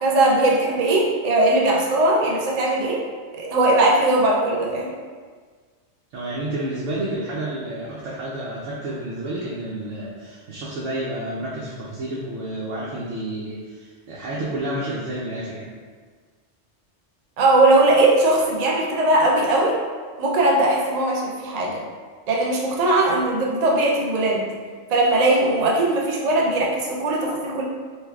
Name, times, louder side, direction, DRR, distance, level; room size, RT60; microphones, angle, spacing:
voice 1, 0.0-3.0 3.3-4.9 17.4-19.8 20.2-21.8 22.3-24.5 24.9-27.6, right 2 dB, 60° right, -2 dB, 0.4 m, -19 dB
voice 2, 6.1-15.7, right 1 dB, 85° right, -6 dB, 1.0 m, -30 dB
3.3 x 3.0 x 2.3 m, 1.5 s
omnidirectional pair, 1.2 m